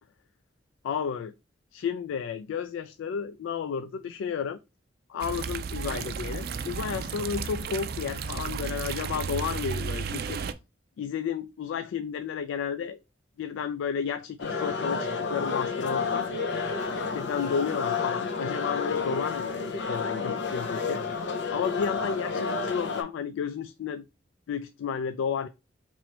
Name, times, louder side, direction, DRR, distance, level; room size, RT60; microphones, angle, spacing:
voice 1, 0.8-1.3 1.7-4.6 5.1-10.4 11.0-13.0 13.4-16.3 16.9-19.5 19.9-21.0 21.5-24.0 24.5-25.5, left 7 dB, 90° left, 0.3 m, -32 dB
sound 1, 5.2-10.5, right 5 dB, 50° right, 0.3 m, -33 dB
sound 2, 14.4-23.0, left 4 dB, 65° left, 0.7 m, -30 dB
3.0 x 3.0 x 4.3 m
head